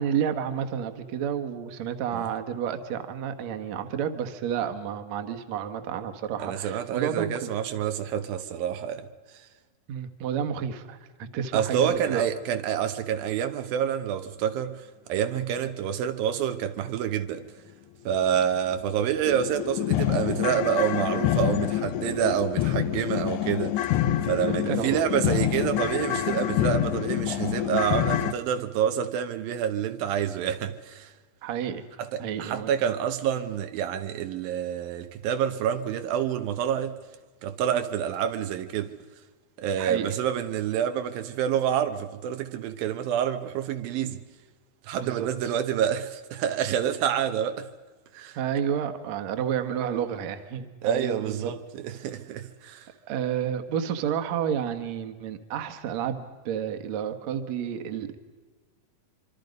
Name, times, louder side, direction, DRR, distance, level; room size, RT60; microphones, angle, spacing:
voice 1, 0.0-7.5 9.9-12.3 15.6-15.7 24.0-24.2 24.5-25.0 31.4-31.8 32.2-32.7 39.8-40.1 44.9-45.5 48.4-51.5 53.1-58.2, right 8 dB, 60° right, 2.3 m, -30 dB
voice 2, 6.4-9.1 11.5-17.4 18.1-24.0 24.2-31.1 32.0-37.0 37.4-38.9 39.6-44.2 44.8-47.7 48.1-48.4 50.8-52.9, right 9 dB, 80° right, 2.7 m, -28 dB
sound 1, 18.3-18.4 18.8-18.9 19.3-28.3, left 12 dB, 70° left, 2.1 m, -27 dB
25.5 x 25.0 x 5.3 m
omnidirectional pair, 4.1 m